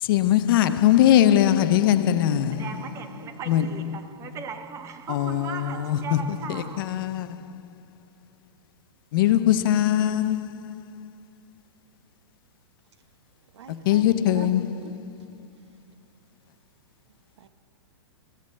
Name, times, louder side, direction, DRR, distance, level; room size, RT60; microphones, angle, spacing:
voice 1, 0.0-2.8 3.5-4.3 5.1-7.5 9.1-11.1 13.8-15.4, left 11 dB, 50° left, 0.5 m, -22 dB
voice 2, 2.5-6.9, right 6 dB, 20° right, 0.6 m, -38 dB
voice 3, 13.5-14.9 17.4-17.5, right 6 dB, 75° right, 0.6 m, -43 dB
15.0 x 7.4 x 3.2 m
hypercardioid pair, 130°, 14 cm